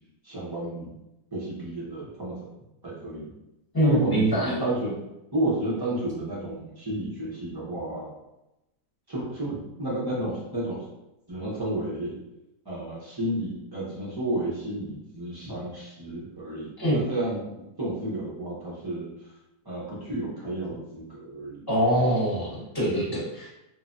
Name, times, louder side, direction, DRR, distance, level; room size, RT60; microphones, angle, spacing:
voice 1, 0.2-0.9 1.3-2.4 2.8-3.3 3.8-5.0 5.3-8.1 9.1-10.8 11.3-12.2 12.6-19.1 19.6-21.7 22.8-23.1, right 1 dB, 35° right, -8 dB, 0.3 m, -31 dB
voice 2, 3.7-4.5 16.8-17.0 21.7-23.5, equal, 15° left, -10 dB, 1.0 m, -24 dB
3.2 x 2.1 x 2.5 m, 0.92 s
omnidirectional pair, 1.7 m